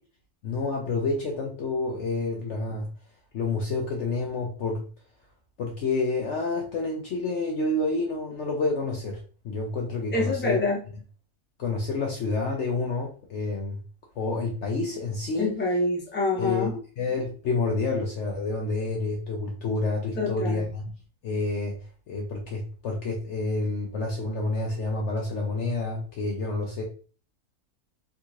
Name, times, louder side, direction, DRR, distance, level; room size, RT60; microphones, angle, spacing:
voice 1, 0.4-2.9 3.3-4.9 5.6-9.2 9.4-10.6 11.6-13.8 14.2-15.5 16.4-16.7 17.0-20.8 21.2-21.8 22.1-26.8, left 3 dB, 65° left, 0 dB, 0.8 m, -28 dB
voice 2, 10.1-10.8 15.4-16.8 20.1-20.6, left 3 dB, 10° left, -3 dB, 0.7 m, -26 dB
3.6 x 2.8 x 2.4 m, 0.39 s
omnidirectional pair, 1.6 m